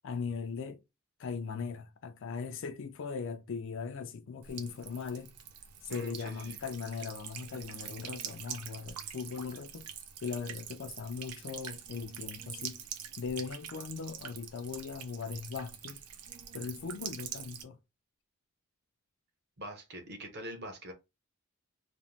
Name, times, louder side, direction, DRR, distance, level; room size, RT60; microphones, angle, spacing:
voice 1, 0.0-0.8 1.2-5.3 5.8-9.9 10.2-12.8 13.2-16.0 16.5-17.8, left 5 dB, 55° left, 0.4 m, -39 dB
Buzz / Water tap faucet / Trickle dribble, 4.4-17.6, right 9 dB, 90° right, 0.5 m, -45 dB
voice 2, 5.9-6.6 19.6-20.9, equal, 45° right, 0.7 m, -44 dB
2.5 x 2.1 x 3.0 m
head